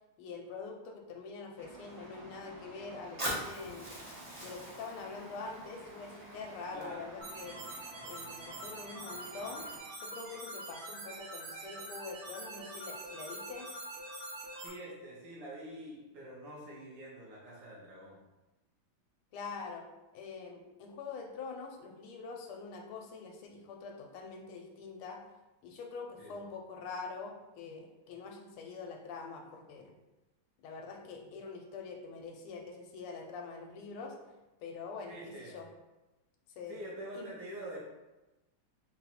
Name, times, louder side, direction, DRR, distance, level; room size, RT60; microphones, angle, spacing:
voice 1, 0.2-3.9 4.4-7.6 8.0-9.6 10.0-13.7 19.3-19.9 20.1-25.2 25.6-30.0 30.6-34.2 34.6-35.7 36.6-36.8 37.1-37.3, left 4 dB, 80° left, 2 dB, 1.5 m, -45 dB
sound 1, 1.6-9.8, right 1 dB, 45° right, 1.0 m, -52 dB
Fire, 3.2-7.2, equal, 30° right, 0.6 m, -42 dB
voice 2, 6.7-7.2 14.6-18.2 26.2-26.3 35.1-35.6 36.7-37.8, right 1 dB, 60° right, -5 dB, 1.6 m, -46 dB
sound 2, 7.2-14.7, right 2 dB, 90° right, 1.9 m, -44 dB
4.3 x 2.4 x 4.1 m, 1.0 s
omnidirectional pair, 2.4 m